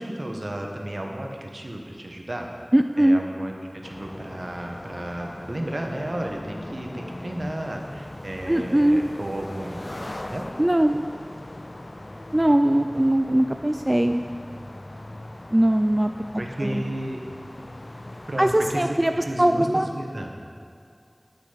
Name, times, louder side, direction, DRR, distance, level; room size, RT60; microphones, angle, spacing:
voice 1, 0.0-2.5 3.0-3.5 3.8-9.8 10.3-10.5 16.4-17.2 18.3-20.3, right 1 dB, 70° right, 1 dB, 1.2 m, -33 dB
voice 2, 2.7-3.2 8.5-9.0 10.6-11.0 12.3-14.2 15.5-16.8 18.4-19.1 19.4-19.9, right 1 dB, 30° right, 6 dB, 0.3 m, -20 dB
sound 1, 3.8-18.9, left 1 dB, 50° left, 0.3 m, -40 dB
12.0 x 6.1 x 5.7 m, 2.3 s
wide cardioid pair, 40°, 0 cm